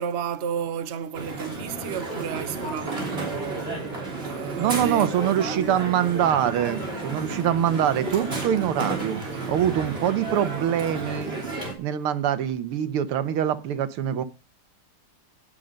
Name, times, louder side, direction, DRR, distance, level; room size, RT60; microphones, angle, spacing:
voice 1, 0.0-3.8 4.2-5.8 10.3-10.5, right 7 dB, 45° right, 0.9 m, -33 dB
Crowd, 1.1-11.7, right 2 dB, 25° right, 3.8 m, -32 dB
voice 2, 4.6-11.3 11.8-14.2, right 10 dB, 90° right, 1.9 m, -24 dB
17.5 x 6.6 x 5.2 m
omnidirectional pair, 2.3 m